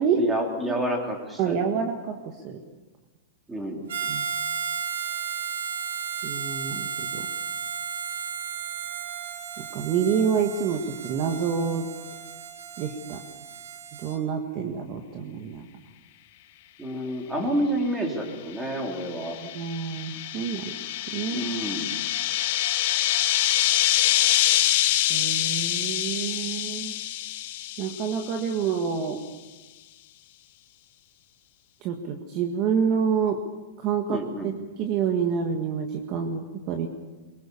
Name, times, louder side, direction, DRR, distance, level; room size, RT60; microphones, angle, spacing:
voice 1, 0.1-1.7 3.5-3.9 16.8-19.4 21.3-21.9 34.1-34.5, right 1 dB, 5° right, 1 dB, 3.3 m, -29 dB
voice 2, 1.4-2.6 4.1-4.3 6.2-7.2 9.6-11.9 12.8-13.2 14.0-15.6 19.5-20.8 21.1-21.5 25.1-26.9 27.8-29.2 31.8-33.4 33.8-34.5 34.8-36.9, right 7 dB, 30° right, 5 dB, 1.6 m, -27 dB
Harmonica, 3.9-14.2, right 7 dB, 85° right, 3.2 m, -34 dB
sound 1, 18.8-28.6, left 14 dB, 45° left, 1.6 m, -25 dB
23.0 x 23.0 x 7.0 m, 1.2 s
supercardioid pair, 170°, 0 cm